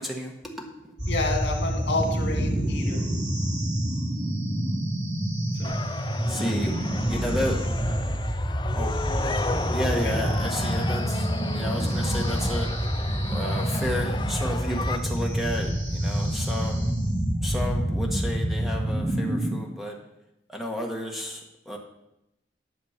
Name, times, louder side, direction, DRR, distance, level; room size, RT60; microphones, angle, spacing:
voice 1, 0.0-1.0 6.1-6.7 7.1-7.6 8.7-8.9 9.7-12.7 13.3-16.9 17.4-20.0 20.5-21.8, equal, ahead, 0 dB, 1.4 m, -32 dB
sound 1, 1.0-19.5, right 1 dB, 40° right, 3.3 m, -27 dB
voice 2, 1.1-3.1 5.5-5.8 6.4-6.7 9.9-10.2, left 2 dB, 80° left, 2 dB, 2.2 m, -30 dB
sound 2, 5.6-15.0, left 3 dB, 25° left, 0.4 m, -34 dB
11.0 x 6.7 x 5.8 m, 0.88 s
head